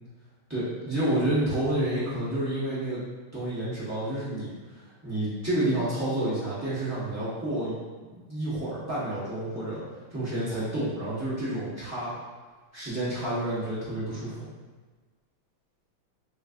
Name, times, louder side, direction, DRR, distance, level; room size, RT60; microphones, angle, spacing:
voice 1, 0.5-3.0 3.3-9.8 10.1-12.1 12.7-14.5, right 1 dB, 20° right, -11 dB, 0.4 m, -29 dB
4.1 x 2.6 x 2.5 m, 1.4 s
omnidirectional pair, 2.3 m